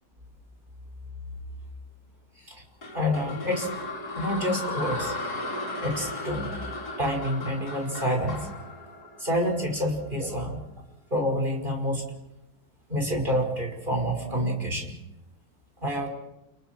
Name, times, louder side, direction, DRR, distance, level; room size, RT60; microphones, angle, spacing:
sound 1, 2.8-10.0, left 2 dB, 60° left, 4.4 m, -35 dB
voice 1, 2.9-3.7 4.1-5.1 5.8-6.6 7.0-8.5 9.2-10.6 11.1-12.1 12.9-14.9 15.8-16.1, equal, 25° right, 1 dB, 6.0 m, -28 dB
29.5 x 29.0 x 4.7 m, 0.92 s
omnidirectional pair, 1.9 m